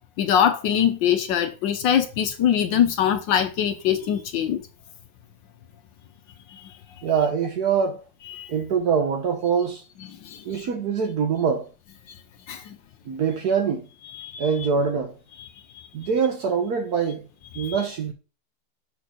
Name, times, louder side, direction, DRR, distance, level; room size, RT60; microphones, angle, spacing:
voice 1, 0.2-4.6 6.5-6.7 8.3-8.5 10.2-10.4 12.5-12.8 14.2-14.5 17.5-17.8, left 9 dB, 70° left, 1.3 m, -23 dB
voice 2, 7.0-8.0 8.5-9.8 10.4-11.7 13.1-13.9 14.4-15.2 15.9-17.3 17.5-18.1, right 6 dB, 60° right, 1.1 m, -24 dB
6.2 x 4.3 x 5.0 m
omnidirectional pair, 2.4 m